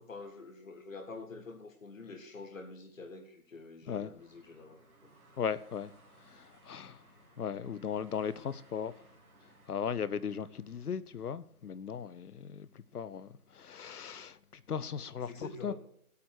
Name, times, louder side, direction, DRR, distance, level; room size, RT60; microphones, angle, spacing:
voice 1, 0.0-5.1 15.3-15.7, left 3 dB, 60° left, 1.8 m, -47 dB
sound 1, 4.2-10.9, right 2 dB, 65° right, 3.2 m, -62 dB
voice 2, 5.4-5.9 6.3-7.0 7.4-8.9 9.7-12.7 12.9-14.4 14.7-15.7, left 7 dB, 75° left, 0.8 m, -37 dB
16.5 x 8.4 x 4.6 m
figure-of-eight pair, 160°, 45 cm